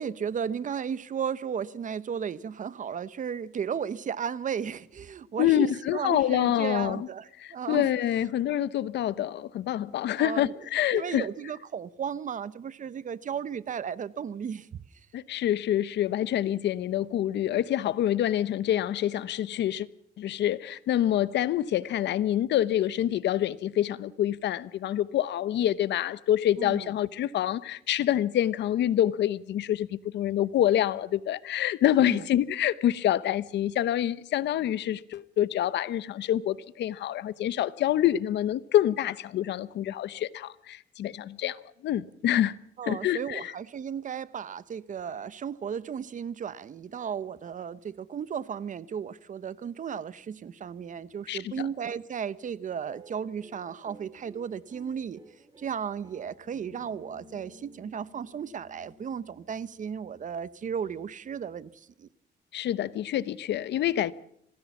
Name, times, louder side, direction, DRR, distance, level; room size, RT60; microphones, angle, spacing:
voice 1, 0.0-7.9 10.1-10.5 10.9-14.7 26.6-26.9 32.1-32.3 42.8-55.2 55.6-62.1, right 7 dB, 45° right, 0.9 m, -35 dB
voice 2, 5.4-7.1 7.4-11.3 15.1-19.9 20.2-42.6 42.9-43.5 51.3-51.5 62.5-64.1, left 12 dB, 80° left, 0.9 m, -26 dB
sound 1, 52.8-59.4, right 1 dB, 25° right, 3.9 m, -53 dB
26.0 x 17.5 x 7.2 m
cardioid pair, 115°, 18 cm